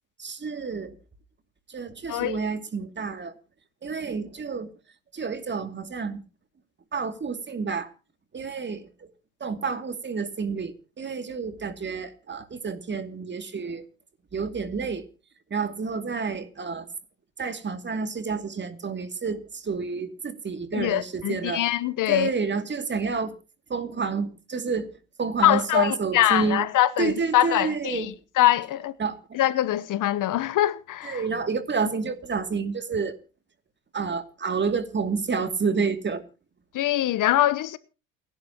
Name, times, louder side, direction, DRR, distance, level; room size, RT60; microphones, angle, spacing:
voice 1, 0.2-1.0 1.7-3.3 3.8-4.7 5.1-6.2 6.9-7.9 8.3-9.1 9.4-13.9 14.3-15.0 15.5-16.9 17.4-21.6 22.1-23.3 23.7-26.7 27.0-28.1 29.0-29.2 31.0-33.2 33.9-36.2, right 5 dB, 25° right, 2.5 m, -29 dB
voice 2, 20.7-22.3 25.4-28.9 29.3-31.2 36.7-37.8, left 13 dB, 50° left, 1.0 m, -23 dB
29.0 x 11.5 x 2.9 m
supercardioid pair, 90°, 40 cm